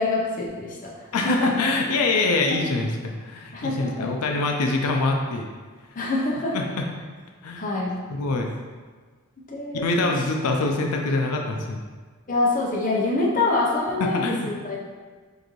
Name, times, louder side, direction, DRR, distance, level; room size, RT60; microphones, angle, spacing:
voice 1, 0.0-1.7 2.5-2.6 3.5-4.1 6.0-6.6 7.6-8.0 9.5-10.2 12.3-14.8, left 2 dB, 35° left, -3 dB, 0.7 m, -26 dB
voice 2, 1.1-5.5 6.5-6.8 7.4-7.6 8.1-8.5 9.7-11.8 14.0-14.5, left 3 dB, 90° left, 2 dB, 0.5 m, -24 dB
6.3 x 2.6 x 3.1 m, 1.5 s
head